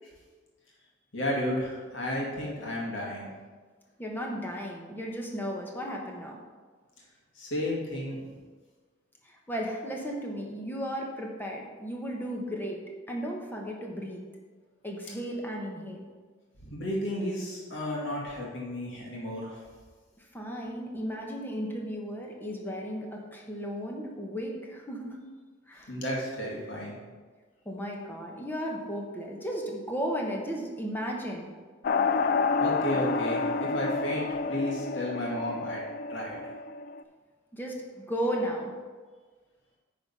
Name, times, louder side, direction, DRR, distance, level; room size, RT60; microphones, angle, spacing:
voice 1, 1.1-3.3 7.4-8.2 16.6-19.6 25.9-27.0 32.6-35.8 36.1-36.4, left 1 dB, 90° left, -4 dB, 2.1 m, -33 dB
voice 2, 4.0-6.4 8.2-8.3 9.2-12.8 13.1-14.2 14.8-16.1 20.3-25.2 25.7-26.0 27.6-31.5 37.5-38.7, equal, 10° left, 0 dB, 1.2 m, -35 dB
sound 1, 31.8-37.0, left 4 dB, 50° left, 0.3 m, -29 dB
9.7 x 4.2 x 5.5 m, 1.5 s
head